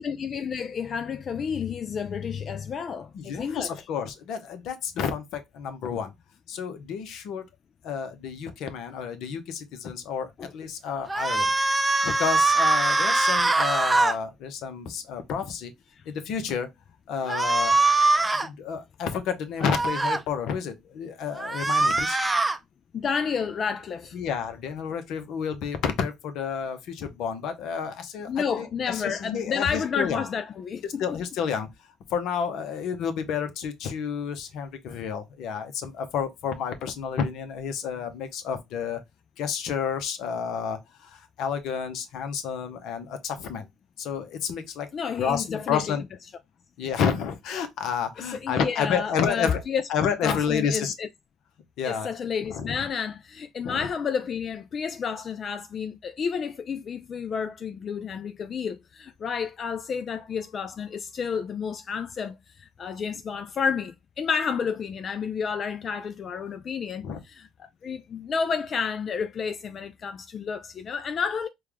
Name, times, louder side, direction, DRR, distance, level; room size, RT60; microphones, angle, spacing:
voice 1, 0.0-3.7 10.4-10.5 16.0-16.1 22.9-24.2 28.3-31.2 44.9-45.9 48.3-49.8 50.2-51.1 51.8-71.5, left 6 dB, 50° left, 0.3 m, -30 dB
voice 2, 3.1-6.1 6.5-7.4 7.8-11.5 12.0-15.7 16.1-16.7 17.1-17.8 18.1-22.2 24.1-30.2 31.0-31.7 32.1-39.0 39.4-43.7 44.0-44.9 45.2-46.0 46.8-49.6 49.9-50.9 51.8-52.1 52.5-52.9 53.6-53.9 67.0-67.2, left 7 dB, 70° left, 0.7 m, -30 dB
sound 1, 11.1-14.2 17.3-18.5 19.6-20.2 21.4-22.6, right 2 dB, 20° right, 0.5 m, -22 dB
4.5 x 2.3 x 3.4 m
hypercardioid pair, 60°, 0 cm